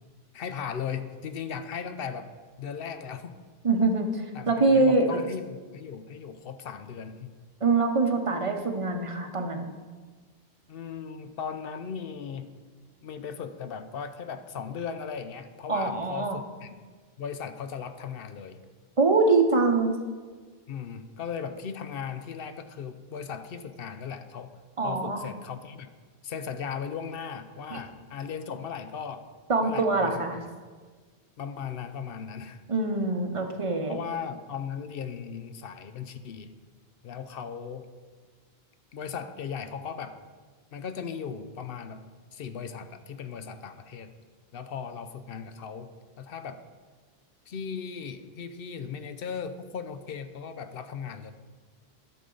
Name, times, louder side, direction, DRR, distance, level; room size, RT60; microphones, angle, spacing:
voice 1, 0.3-2.3 2.6-3.4 4.3-7.4 10.7-12.5 13.0-16.8 17.2-18.6 20.7-24.6 24.8-25.9 26.2-29.3 29.6-30.2 31.4-32.6 33.9-36.5 37.0-37.9 38.9-40.2 40.7-44.1 44.5-46.6 47.5-51.3, left 6 dB, 70° left, 10 dB, 0.8 m, -37 dB
voice 2, 3.6-5.2 7.6-9.7 15.7-16.4 19.0-20.0 24.8-25.2 27.7-27.8 29.5-30.4 32.7-34.0, right 3 dB, 35° right, 4 dB, 0.8 m, -24 dB
12.0 x 6.9 x 3.8 m, 1.5 s
omnidirectional pair, 1.1 m